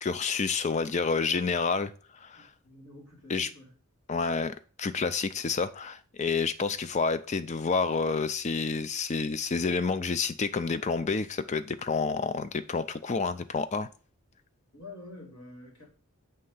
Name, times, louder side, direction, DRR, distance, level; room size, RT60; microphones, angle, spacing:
voice 1, 0.0-2.5 3.3-3.5 4.1-13.9, left 4 dB, 30° left, 0.4 m, -29 dB
voice 2, 2.3-3.8 14.7-15.9, left 2 dB, 75° left, 3.4 m, -48 dB
7.5 x 3.3 x 5.5 m
head